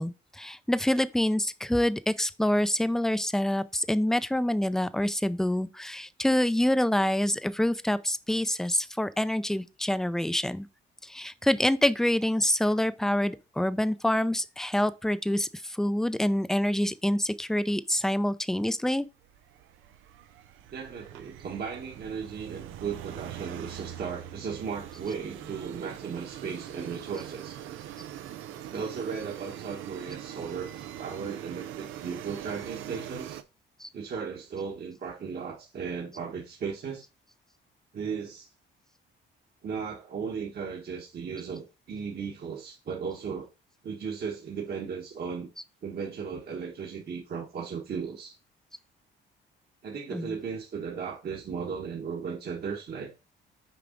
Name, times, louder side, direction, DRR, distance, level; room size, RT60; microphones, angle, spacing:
voice 1, 0.0-10.7 11.0-19.1 33.8-33.9 50.1-50.4, left 1 dB, ahead, 0.5 m, -26 dB
sound 1, 19.2-33.4, right 11 dB, 90° right, 0.6 m, -42 dB
voice 2, 20.7-27.6 28.7-30.7 31.0-33.4 33.9-37.1 37.9-38.5 39.6-43.5 43.8-45.5 45.8-48.3 49.8-53.1, right 6 dB, 55° right, 1.4 m, -36 dB
6.8 x 4.8 x 3.9 m
cardioid pair, 90°, 20 cm